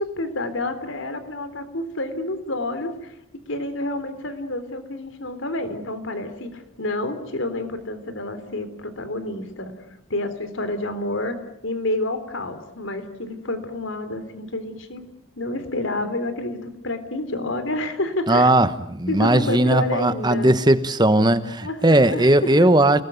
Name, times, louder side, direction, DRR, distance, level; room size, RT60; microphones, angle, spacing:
voice 1, 0.0-3.2 3.5-9.7 10.1-11.4 11.6-15.0 15.4-18.5 19.1-20.5 21.6-22.3 22.6-22.7, left 2 dB, 80° left, 3.6 m, -29 dB
voice 2, 18.3-23.0, right 1 dB, 20° right, 1.2 m, -18 dB
29.5 x 19.5 x 9.5 m
head